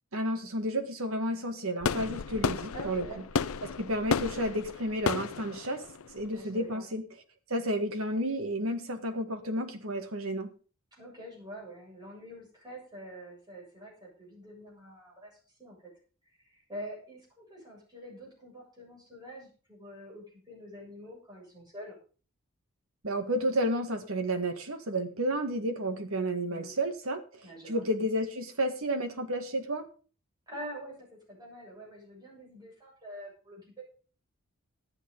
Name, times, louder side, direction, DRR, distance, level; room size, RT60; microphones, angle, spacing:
voice 1, 0.1-3.1 3.6-5.8 6.1-7.0 7.5-10.5 23.0-29.9, right 1 dB, 70° right, 5 dB, 1.9 m, -31 dB
sound 1, 1.8-6.7, left 5 dB, 70° left, 0.5 m, -33 dB
voice 2, 2.7-3.2 6.3-6.9 10.9-15.3 15.6-15.8 16.4-22.0 26.5-26.7 27.4-27.9 30.5-33.8, equal, 20° right, -3 dB, 7.6 m, -46 dB
12.5 x 9.0 x 5.4 m, 0.38 s
head